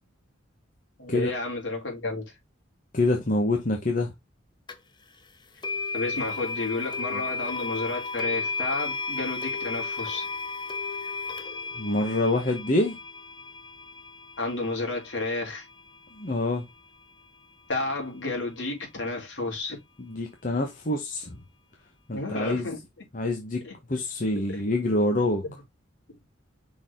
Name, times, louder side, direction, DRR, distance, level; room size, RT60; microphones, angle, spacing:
voice 1, 1.0-2.3 5.9-10.3 14.4-15.7 17.7-19.8 22.1-22.8 23.6-23.7 24.5-24.9 25.4-25.5 26.1-26.2, left 2 dB, 75° left, 3.8 m, -31 dB
voice 2, 2.9-4.1 11.8-13.0 16.2-16.7 20.0-21.4 22.1-22.7 23.1-23.6 23.9-25.4, left 2 dB, 45° left, 1.1 m, -26 dB
sound 1, 4.7-4.8 5.6-16.6, left 4 dB, 25° left, 0.8 m, -34 dB
5.8 x 4.6 x 3.6 m
head